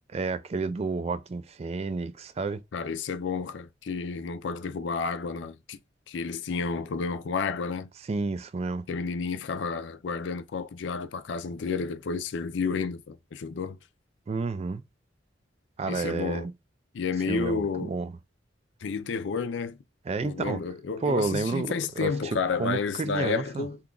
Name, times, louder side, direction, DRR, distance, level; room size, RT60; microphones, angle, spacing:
voice 1, 0.1-2.6 8.1-8.8 14.3-14.8 15.8-16.5 17.3-18.1 20.1-20.6 21.0-23.7, right 3 dB, 35° right, 0.3 m, -30 dB
voice 2, 2.7-5.8 6.1-7.9 8.9-13.8 15.9-16.5 16.9-17.9 18.8-19.8 20.2-23.8, left 5 dB, 70° left, 0.4 m, -31 dB
2.9 x 2.3 x 3.7 m
head